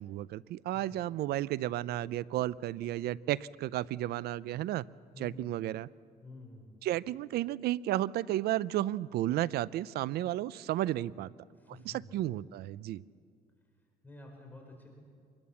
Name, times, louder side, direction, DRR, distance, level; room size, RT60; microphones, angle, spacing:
voice 1, 0.0-4.8 5.2-5.9 6.8-11.3 11.8-13.0, right 14 dB, 70° right, 20 dB, 0.5 m, -33 dB
voice 2, 5.1-5.5 6.2-6.8 11.5-12.1 14.0-14.9, left 2 dB, 10° left, 1 dB, 4.7 m, -50 dB
24.5 x 21.5 x 7.1 m, 2.2 s
cardioid pair, 110°, 17 cm